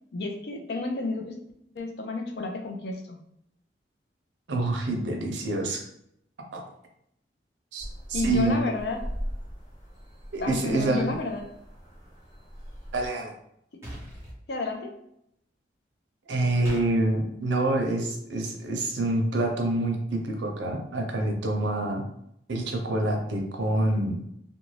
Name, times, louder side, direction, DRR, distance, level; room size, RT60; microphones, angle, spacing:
voice 1, 0.1-1.4 1.7-3.2 8.1-9.0 10.4-11.4 13.7-13.8 14.5-14.9, left 3 dB, 65° left, 3 dB, 0.5 m, -31 dB
voice 2, 4.5-5.8 6.5-6.6 7.7-8.6 10.3-11.2 12.9-13.3 16.3-22.0 22.5-24.2, right 2 dB, 90° right, 2 dB, 0.6 m, -27 dB
sound 1, 7.8-13.1, equal, 45° left, 0.8 m, -39 dB
sound 2, 13.8-14.4 16.6-16.9, equal, 15° right, 1.0 m, -39 dB
2.5 x 2.2 x 3.1 m, 0.74 s
head